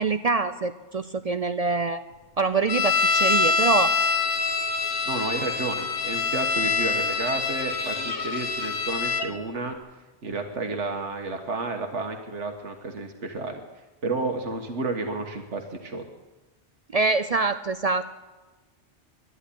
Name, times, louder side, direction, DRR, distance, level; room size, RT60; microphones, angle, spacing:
voice 1, 0.0-2.0 2.4-4.0 16.9-18.1, right 4 dB, 50° right, 11 dB, 0.4 m, -25 dB
sound 1, 2.7-9.3, left 4 dB, 50° left, 1.2 m, -25 dB
voice 2, 5.1-9.8 10.2-13.6 14.0-16.0, right 3 dB, 85° right, 5 dB, 1.7 m, -31 dB
11.5 x 11.0 x 10.0 m, 1.2 s
omnidirectional pair, 1.2 m